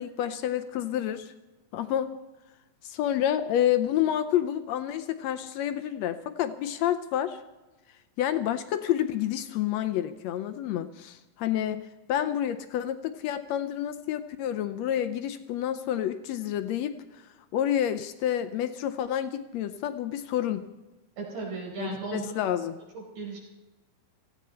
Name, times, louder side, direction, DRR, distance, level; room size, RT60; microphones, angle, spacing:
voice 1, 0.0-1.3 1.7-2.1 2.8-7.4 8.2-17.2 17.5-20.6 21.8-22.8, left 11 dB, 75° left, 11 dB, 1.6 m, -29 dB
voice 2, 21.2-22.3 22.9-23.4, right 4 dB, 80° right, -3 dB, 6.5 m, -36 dB
18.0 x 15.5 x 4.3 m, 1.1 s
omnidirectional pair, 3.7 m